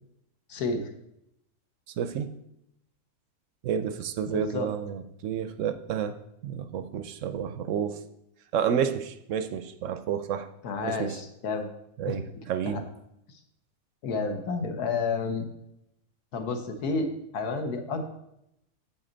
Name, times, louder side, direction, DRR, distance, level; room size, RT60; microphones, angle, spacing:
voice 1, 0.5-0.9 4.3-4.7 10.6-11.7 12.1-12.2 12.6-12.8 14.0-15.5 16.3-18.0, left 4 dB, 70° left, 6 dB, 1.5 m, -30 dB
voice 2, 1.9-2.3 3.6-6.2 6.4-8.0 8.5-10.5 10.8-11.2 12.0-12.9, right 8 dB, 65° right, 10 dB, 0.8 m, -30 dB
8.5 x 7.5 x 3.9 m, 0.79 s
omnidirectional pair, 1.7 m